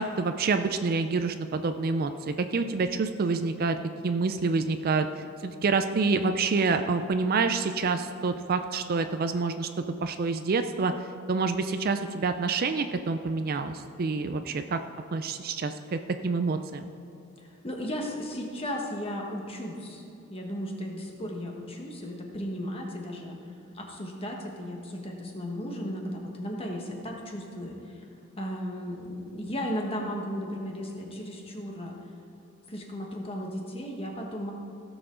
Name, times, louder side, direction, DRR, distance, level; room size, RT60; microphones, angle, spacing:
voice 1, 0.0-3.8 4.0-5.1 5.4-9.7 10.0-10.9 11.3-14.8 15.1-16.9, right 4 dB, 40° right, 9 dB, 0.4 m, -27 dB
voice 2, 17.4-20.0 20.3-23.4 23.7-28.0 28.4-32.0 32.7-34.5, equal, 25° left, 1 dB, 1.3 m, -35 dB
16.5 x 6.9 x 3.8 m, 2.8 s
head